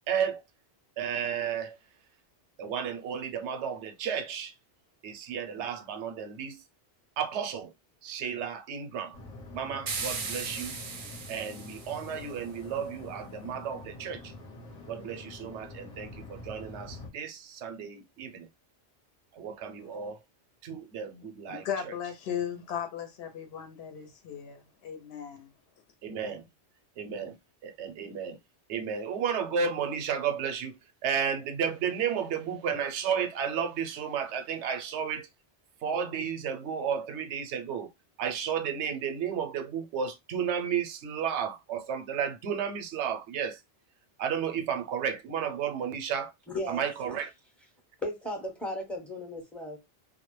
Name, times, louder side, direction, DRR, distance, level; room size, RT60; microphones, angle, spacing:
voice 1, 0.1-0.4 1.0-1.8 2.6-4.5 5.0-6.6 7.2-7.7 8.0-9.2 9.5-10.8 11.3-14.3 14.9-18.5 19.3-20.2 20.6-21.7 26.0-26.5 27.0-27.4 27.6-28.4 28.7-35.3 35.8-37.9 38.2-43.6 44.2-46.3 46.7-47.3, right 7 dB, 85° right, 0.9 m, -33 dB
sound 1, 9.1-17.1, left 2 dB, 40° left, 0.7 m, -46 dB
sound 2, 9.9-12.3, right 5 dB, 60° right, 0.6 m, -37 dB
voice 2, 21.5-25.5, left 8 dB, 70° left, 0.8 m, -36 dB
voice 3, 46.5-46.8 48.0-49.8, left 1 dB, ahead, 0.6 m, -35 dB
2.1 x 2.1 x 3.0 m
omnidirectional pair, 1.1 m